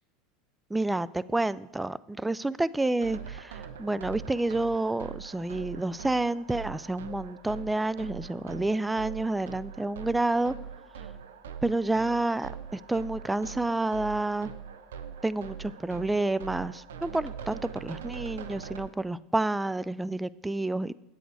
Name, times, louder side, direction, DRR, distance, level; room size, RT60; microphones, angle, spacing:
voice 1, 0.7-10.5 11.0-11.1 11.6-14.5 15.2-21.0, right 2 dB, 10° right, 18 dB, 0.3 m, -29 dB
sound 1, 3.0-18.9, right 7 dB, 80° right, 0.7 m, -42 dB
9.1 x 8.0 x 4.7 m, 0.85 s
hypercardioid pair, 85°, 0 cm